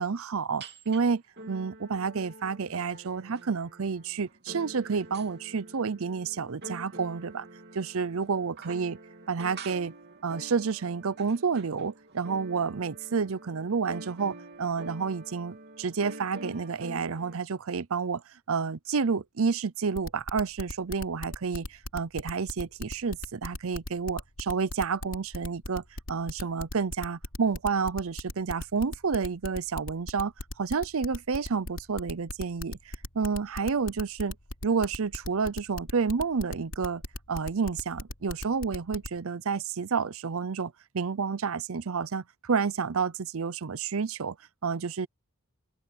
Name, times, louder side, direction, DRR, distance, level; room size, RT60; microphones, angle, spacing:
voice 1, 0.0-7.5 7.7-9.0 9.3-9.9 10.2-18.2 18.5-25.8 26.1-30.3 30.6-34.3 34.6-37.0 37.3-44.4 44.6-45.1, right 5 dB, 65° right, 0.6 m, -30 dB
sound 1, 0.6-1.0 1.4-17.4, right 2 dB, 50° right, 3.0 m, -46 dB
sound 2, 20.0-39.2, left 1 dB, 60° left, 3.4 m, -37 dB
open air
head